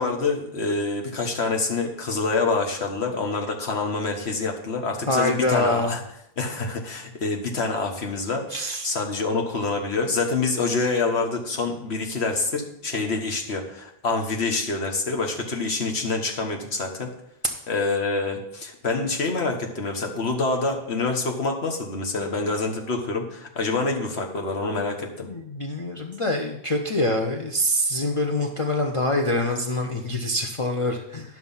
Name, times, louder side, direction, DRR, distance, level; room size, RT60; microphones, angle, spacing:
voice 1, 0.0-6.0 6.4-17.1 17.7-25.3, left 3 dB, 85° left, 2 dB, 1.6 m, -26 dB
voice 2, 5.1-5.9 8.5-8.9 25.3-31.4, left 1 dB, 35° left, 2 dB, 0.8 m, -25 dB
11.0 x 6.0 x 5.6 m, 0.77 s
omnidirectional pair, 1.1 m